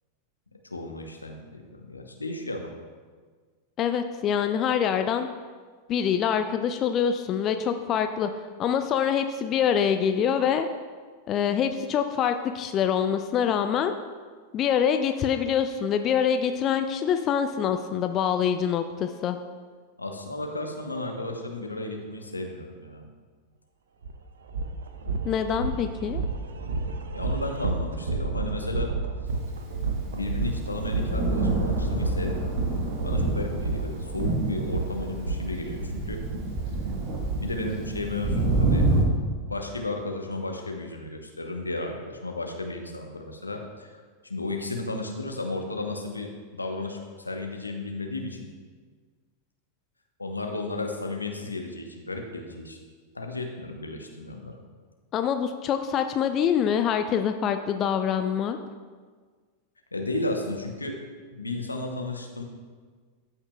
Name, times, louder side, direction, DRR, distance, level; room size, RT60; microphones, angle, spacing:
voice 1, 0.6-2.7 20.0-23.1 27.1-28.9 30.1-32.5 33.0-36.2 37.4-38.8 39.1-48.5 50.2-52.8 53.1-54.6 59.9-61.0 61.3-62.4, left 2 dB, 80° left, 3 dB, 0.9 m, -34 dB
voice 2, 3.8-5.3 5.9-8.3 8.6-10.7 11.3-14.0 14.5-19.4 25.3-26.2 55.1-58.6, left 8 dB, 30° left, 8 dB, 0.4 m, -25 dB
sound 1, 24.0-24.1 24.5-35.9, right 3 dB, 65° right, 0.6 m, -30 dB
Thunder, 29.5-39.0, right 2 dB, 40° right, 1.3 m, -28 dB
13.5 x 5.7 x 2.3 m, 1.5 s
figure-of-eight pair, 90°, 0 cm